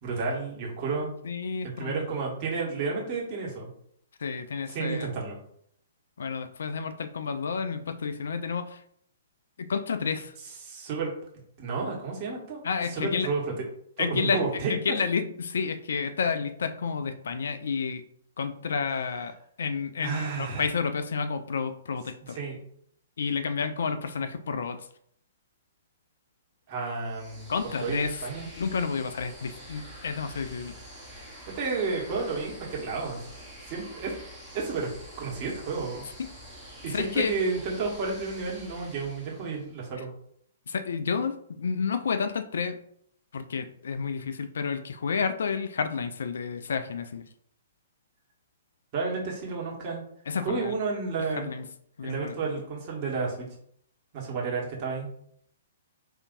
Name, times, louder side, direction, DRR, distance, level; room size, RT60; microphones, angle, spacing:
voice 1, 0.0-1.1 1.6-3.7 4.7-5.4 10.4-11.1 11.6-13.5 14.0-15.0 20.0-20.7 22.3-22.6 26.7-27.5 27.8-28.5 31.6-33.2 33.7-34.1 34.5-34.9 35.2-36.1 36.8-40.1 48.9-50.0 50.4-51.5 52.0-53.5 54.1-55.1, right 4 dB, 35° right, -3 dB, 1.3 m, -31 dB
voice 2, 1.2-2.0 4.2-5.1 6.2-8.8 9.6-10.3 12.6-13.3 14.0-14.4 14.7-18.0 18.4-19.3 19.6-22.4 23.2-24.9 27.5-28.2 28.5-30.7 36.2-36.3 36.9-37.3 40.7-42.8 43.3-47.2 50.3-50.8 51.4-51.6 52.0-52.3, left 5 dB, 60° left, 10 dB, 0.3 m, -30 dB
sound 1, 27.0-39.8, equal, 10° right, 1.2 m, -46 dB
5.0 x 2.7 x 2.6 m, 0.68 s
figure-of-eight pair, 115°, 0 cm